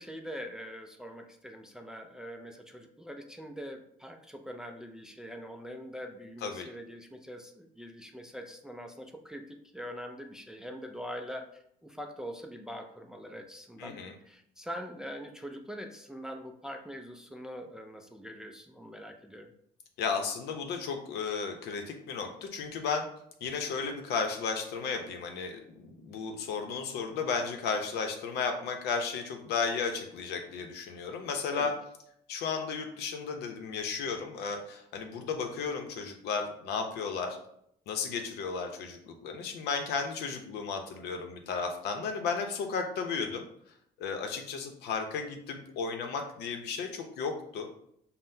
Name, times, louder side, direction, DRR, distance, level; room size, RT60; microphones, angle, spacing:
voice 1, 0.0-19.5 31.5-31.7 43.2-43.4, equal, 5° right, 4 dB, 0.3 m, -43 dB
voice 2, 13.8-14.1 20.0-23.1 23.4-31.7 32.3-37.4 37.9-43.4 44.0-47.7, left 5 dB, 75° left, 4 dB, 0.7 m, -34 dB
5.5 x 2.1 x 2.7 m, 0.72 s
cardioid pair, 110°, 17 cm